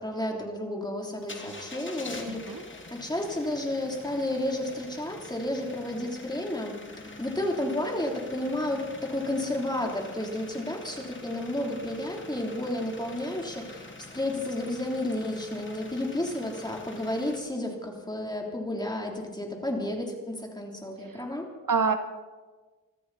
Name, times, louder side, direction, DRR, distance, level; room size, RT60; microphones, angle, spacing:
voice 1, 0.0-21.5, left 1 dB, 10° left, 0 dB, 3.5 m, -32 dB
sound 1, 1.2-17.4, left 2 dB, 35° left, 2.4 m, -45 dB
voice 2, 2.3-2.6 21.1-21.2 21.7-22.0, right 5 dB, 70° right, 8 dB, 1.3 m, -26 dB
25.5 x 13.0 x 4.2 m, 1.3 s
wide cardioid pair, 80°, 34 cm